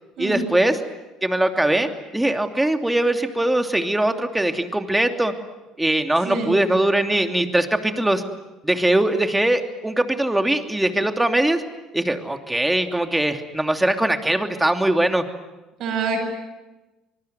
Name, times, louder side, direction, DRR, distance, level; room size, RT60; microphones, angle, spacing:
voice 1, 0.2-0.8 1.2-5.3 5.8-8.2 8.6-11.6 11.9-15.2, right 1 dB, 10° right, 6 dB, 2.9 m, -21 dB
voice 2, 6.2-6.6 15.8-16.2, right 4 dB, 60° right, 1 dB, 7.8 m, -25 dB
25.0 x 22.0 x 9.4 m, 1.1 s
hypercardioid pair, 60°, 0 cm